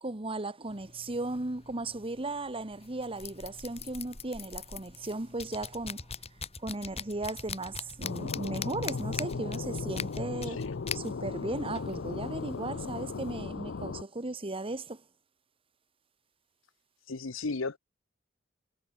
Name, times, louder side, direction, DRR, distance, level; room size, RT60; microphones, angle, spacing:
voice 1, 0.0-6.1 6.6-10.6 10.9-15.0, right 2 dB, 30° right, 1.3 m, -36 dB
sound 1, 0.7-13.3, left 5 dB, 30° left, 5.8 m, -43 dB
sound 2, 8.0-14.0, left 4 dB, 65° left, 0.6 m, -36 dB
voice 2, 17.1-17.8, left 3 dB, 90° left, 1.0 m, -34 dB
head